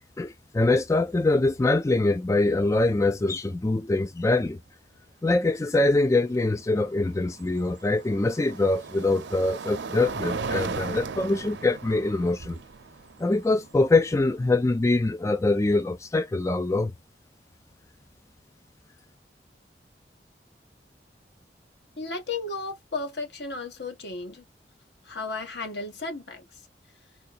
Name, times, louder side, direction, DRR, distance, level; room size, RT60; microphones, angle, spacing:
voice 1, 0.2-4.6 5.2-12.6 13.2-16.9, left 2 dB, 15° left, 0.3 m, -24 dB
sound 1, 0.8-1.0 1.3-1.7 3.5-3.6 6.6-14.7, right 4 dB, 90° right, 0.7 m, -37 dB
voice 2, 22.0-24.4 25.0-26.6, left 3 dB, 75° left, 1.7 m, -34 dB
4.5 x 2.7 x 4.1 m
head